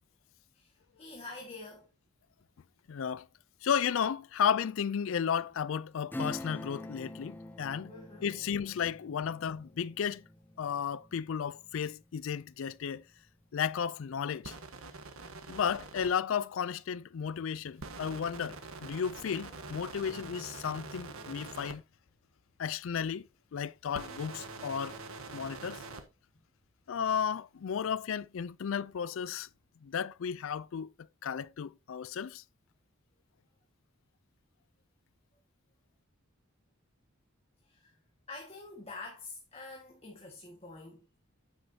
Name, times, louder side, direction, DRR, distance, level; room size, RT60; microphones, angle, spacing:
voice 1, 0.5-1.9 7.8-8.2 14.8-14.9 15.5-15.6 37.6-37.9 38.3-41.0, left 3 dB, 30° left, 1.7 m, -47 dB
voice 2, 2.9-3.3 3.6-7.9 8.2-10.2 10.6-13.0 13.5-14.6 15.5-21.8 22.6-25.0 25.3-25.8 26.9-29.5 29.8-30.9 31.2-32.4, left 7 dB, 70° left, 0.4 m, -33 dB
Acoustic guitar / Strum, 6.1-12.3 12.7-12.8, left 1 dB, 10° left, 0.5 m, -45 dB
sound 1, 14.4-16.1 17.8-21.7 23.9-26.0, right 3 dB, 85° right, 1.3 m, -45 dB
9.1 x 8.0 x 2.8 m
head